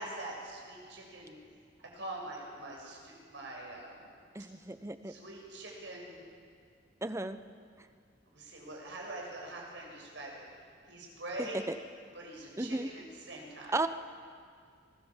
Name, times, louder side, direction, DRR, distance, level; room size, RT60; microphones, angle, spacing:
voice 1, 0.0-1.4 1.8-4.1 5.1-6.2 8.3-10.4 10.9-11.7 12.1-13.8, right 1 dB, 90° right, -1 dB, 7.0 m, -44 dB
voice 2, 4.3-5.1 7.0-7.4 11.4-11.8 12.6-12.9 13.7-13.9, right 2 dB, 15° right, 11 dB, 0.8 m, -34 dB
25.5 x 20.5 x 7.3 m, 2.1 s
head